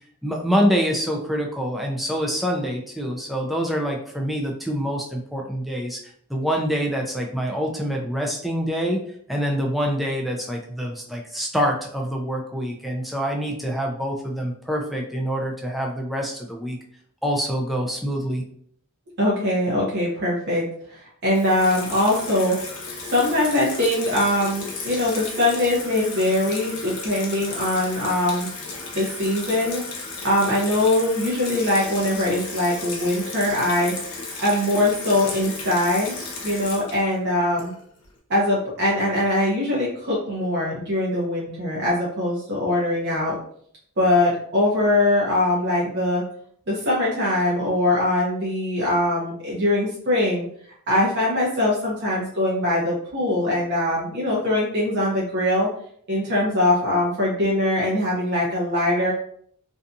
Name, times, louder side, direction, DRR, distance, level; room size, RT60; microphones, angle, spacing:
voice 1, 0.2-6.0 6.3-9.0 9.3-16.8 17.2-18.4, equal, ahead, 0 dB, 0.3 m, -25 dB
voice 2, 19.2-22.6 23.1-28.5 28.9-29.8 30.2-33.9 34.4-36.1 36.4-37.7 38.3-43.3 44.0-46.2 46.7-50.5 50.9-55.7 56.1-59.1, left 1 dB, 55° right, -5 dB, 0.7 m, -22 dB
Water tap faucet / Sink (filling or washing), 21.3-38.0, left 3 dB, 85° left, 0.8 m, -34 dB
2.6 x 2.3 x 2.5 m, 0.62 s
head